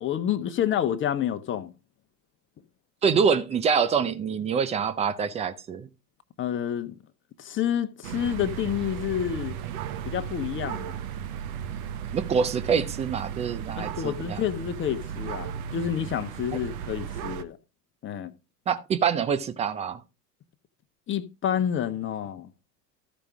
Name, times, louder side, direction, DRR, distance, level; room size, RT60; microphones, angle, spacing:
voice 1, 0.0-1.7 6.4-6.9 7.4-9.6 10.0-11.0 13.8-17.6 18.0-18.3 21.1-22.5, left 10 dB, 25° left, 0.8 m, -29 dB
voice 2, 3.0-5.9 12.1-14.4 18.7-20.0, right 6 dB, 15° right, 0.4 m, -25 dB
sound 1, 8.0-17.4, right 9 dB, 60° right, 1.0 m, -35 dB
14.0 x 5.1 x 3.5 m
figure-of-eight pair, 85°, 49 cm